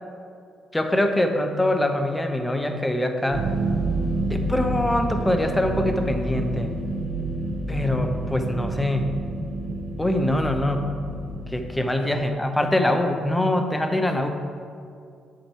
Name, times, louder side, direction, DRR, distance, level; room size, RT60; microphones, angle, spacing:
voice 1, 0.7-3.5 4.3-6.7 7.7-9.1 10.0-10.8 11.5-14.3, left 1 dB, 15° left, 5 dB, 0.7 m, -23 dB
sound 1, 3.3-11.9, right 2 dB, 60° right, 0.8 m, -28 dB
7.5 x 4.5 x 4.5 m, 2.3 s
supercardioid pair, 60°, 0 cm